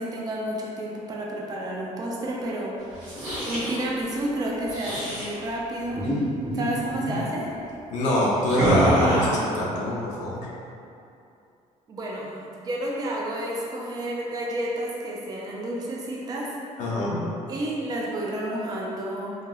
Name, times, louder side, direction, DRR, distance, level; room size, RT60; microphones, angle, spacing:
voice 1, 0.0-3.0 3.4-6.1 6.5-7.5 11.9-16.5 17.5-19.4, right 1 dB, 30° right, -3 dB, 0.4 m, -30 dB
sound 1, 2.9-3.8 4.7-5.3 5.9-6.2 6.4-6.6 6.9-7.2 8.5-9.5, right 1 dB, 65° right, 1.2 m, -24 dB
voice 2, 7.9-10.5 16.8-17.2, left 1 dB, 65° left, -4 dB, 0.5 m, -26 dB
2.9 x 2.8 x 2.3 m, 2.6 s
cardioid pair, 145°, 13 cm